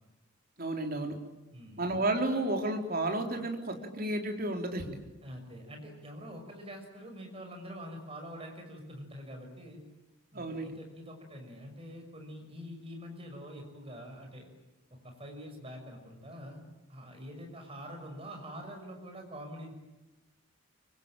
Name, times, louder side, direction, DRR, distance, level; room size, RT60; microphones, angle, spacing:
voice 1, 0.6-1.2 1.8-5.0 10.3-10.7, right 2 dB, 45° right, 3 dB, 3.7 m, -32 dB
voice 2, 1.5-1.8 5.2-9.8 10.3-14.5 15.0-19.7, equal, 25° right, 3 dB, 6.3 m, -45 dB
25.0 x 25.0 x 9.0 m, 1.0 s
head